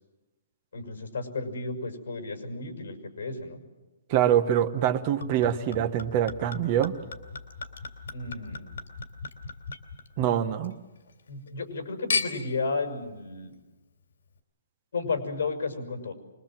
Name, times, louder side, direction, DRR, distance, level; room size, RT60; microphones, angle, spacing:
voice 1, 0.7-3.6 8.1-8.7 11.3-13.5 14.9-16.1, left 3 dB, 65° left, 6 dB, 6.0 m, -33 dB
voice 2, 4.1-6.9 10.2-10.7, right 10 dB, 25° right, 7 dB, 1.1 m, -24 dB
Chink clink / Liquid, 5.2-10.7 11.1-11.7 12.1-12.6 13.3-13.4, left 5 dB, 80° left, 3.0 m, -36 dB
25.0 x 21.5 x 7.6 m, 1.1 s
hypercardioid pair, 175°, 0 cm